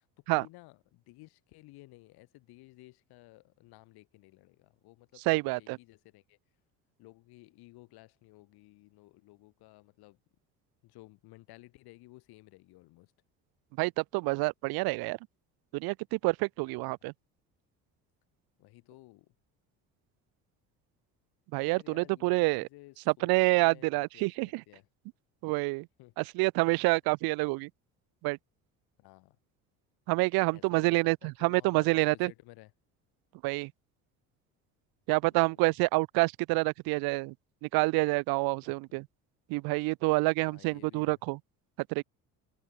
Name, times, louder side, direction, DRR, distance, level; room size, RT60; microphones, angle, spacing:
voice 1, 0.3-6.4 7.0-10.2 10.8-13.1 16.6-16.8 18.6-19.3 21.5-24.9 26.0-26.1 29.0-29.4 30.5-32.7 35.2-35.7 38.6-39.0 40.4-41.2, left 20 dB, 70° left, 3.2 m, -55 dB
voice 2, 5.3-5.8 13.8-15.2 15.7-17.1 21.5-22.7 23.2-24.6 25.4-25.9 26.2-27.7 28.2-28.4 30.1-31.2 31.4-32.3 33.4-33.7 35.1-37.3 37.6-39.1 39.5-41.4 41.9-42.0, right 26 dB, 65° right, 0.5 m, -27 dB
supercardioid pair, 75°, 39 cm